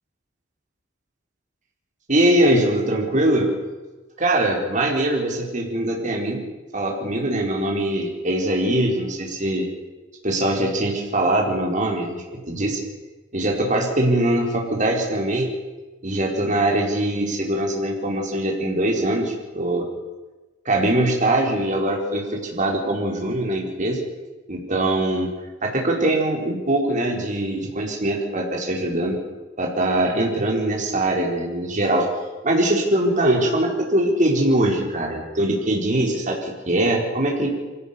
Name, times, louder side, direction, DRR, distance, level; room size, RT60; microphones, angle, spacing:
voice 1, 2.1-3.5 4.2-6.4 6.7-9.6 10.2-12.2 12.5-12.8 13.3-15.5 16.0-19.9 20.6-24.0 24.5-25.3 25.6-29.2 29.6-32.1 32.4-37.5, right 1 dB, 40° right, 0 dB, 4.7 m, -22 dB
24.5 x 17.0 x 7.0 m, 1.2 s
head